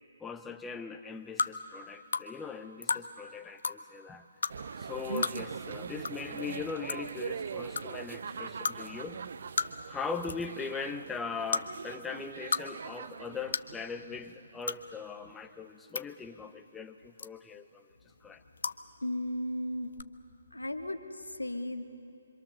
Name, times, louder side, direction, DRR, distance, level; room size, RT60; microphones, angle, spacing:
voice 1, 0.2-4.3 4.8-9.2 9.9-17.9 18.2-18.4, left 5 dB, 10° left, 8 dB, 0.8 m, -40 dB
sound 1, 1.4-1.5 2.1-2.3 2.8-3.0 3.6-3.8 4.4-4.5 5.2-5.4 6.0-6.1 6.4-6.5 6.9-7.1 7.8-7.9 8.6-8.8 9.6-9.9 10.2-10.5 11.5-11.6 12.3-12.6 12.9-13.0 13.5-13.7 14.6-14.8 15.6-16.0 17.2-17.5 18.6-18.8 19.9-20.0, left 4 dB, 60° left, 0.8 m, -31 dB
sound 2, 4.5-15.0 15.3-15.4, right 6 dB, 55° right, 0.6 m, -42 dB
voice 2, 19.0-20.0 20.5-21.8, left 1 dB, 85° left, 7 dB, 1.6 m, -35 dB
26.5 x 25.0 x 6.8 m, 2.6 s
figure-of-eight pair, 140°, 0 cm